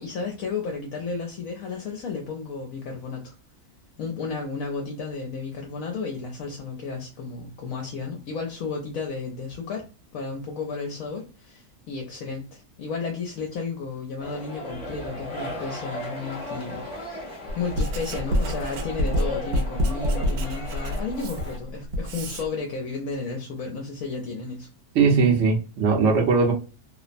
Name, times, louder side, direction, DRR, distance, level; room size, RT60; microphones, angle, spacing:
voice 1, 0.0-3.3 4.0-9.9 10.1-17.2 17.5-24.7, left 4 dB, 70° left, 1.0 m, -33 dB
sound 1, 14.2-21.6, left 1 dB, 35° left, 0.9 m, -36 dB
Writing, 17.5-22.5, equal, 80° right, 1.1 m, -27 dB
voice 2, 24.9-26.5, right 4 dB, 55° right, 0.9 m, -19 dB
2.8 x 2.0 x 2.4 m
omnidirectional pair, 1.6 m